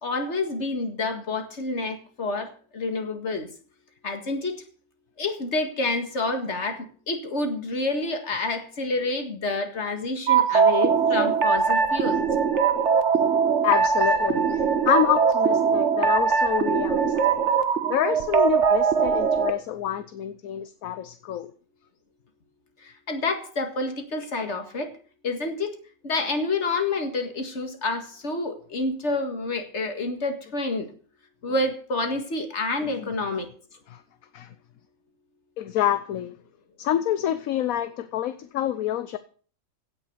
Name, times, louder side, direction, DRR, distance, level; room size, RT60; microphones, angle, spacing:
voice 1, 0.0-3.5 4.0-4.6 5.2-12.2 22.8-24.9 25.2-25.7 26.0-30.9 31.4-33.5, left 2 dB, 50° left, 6 dB, 2.1 m, -28 dB
sound 1, 10.3-19.5, right 6 dB, 55° right, 1.4 m, -21 dB
voice 2, 13.6-17.4 17.9-21.5 33.0-33.1 33.9-34.0 34.3-34.5 35.6-36.3 36.8-39.2, left 11 dB, 70° left, 12 dB, 1.2 m, -27 dB
16.5 x 6.4 x 6.8 m, 0.43 s
omnidirectional pair, 1.5 m